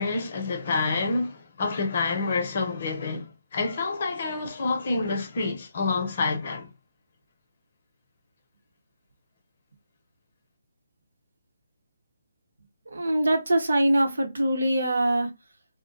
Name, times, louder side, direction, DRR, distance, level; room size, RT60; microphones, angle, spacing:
voice 1, 0.0-6.7, left 3 dB, 50° left, 0.8 m, -28 dB
voice 2, 12.9-15.3, right 1 dB, 80° right, 0.8 m, -23 dB
2.4 x 2.1 x 2.4 m
figure-of-eight pair, 150°, 0 cm